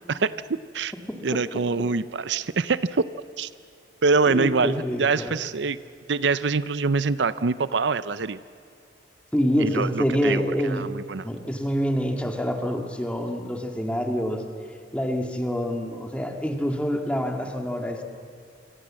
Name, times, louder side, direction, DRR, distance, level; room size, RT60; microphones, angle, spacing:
voice 1, 0.0-0.9 1.2-3.0 3.4-3.5 4.0-5.8 6.1-8.4 9.6-11.3, right 4 dB, 70° right, 15 dB, 0.6 m, -25 dB
voice 2, 1.1-1.4 4.3-5.3 9.3-10.9 11.2-14.4 14.9-18.0, equal, 5° left, 3 dB, 2.2 m, -26 dB
26.0 x 25.0 x 7.6 m, 2.4 s
head